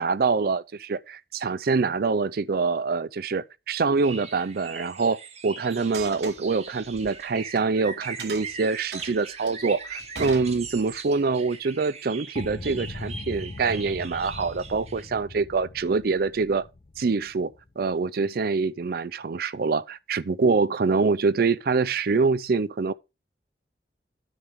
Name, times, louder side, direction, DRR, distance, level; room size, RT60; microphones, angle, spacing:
voice 1, 0.0-16.7 17.0-22.9, right 4 dB, 60° right, 0.5 m, -25 dB
sound 1, 4.0-15.1, right 5 dB, 40° right, 1.2 m, -41 dB
sound 2, 5.8-7.7 8.0-11.1, right 4 dB, 75° right, 2.2 m, -40 dB
sound 3, 12.4-18.0, left 2 dB, 40° left, 0.6 m, -40 dB
9.9 x 3.5 x 7.1 m
head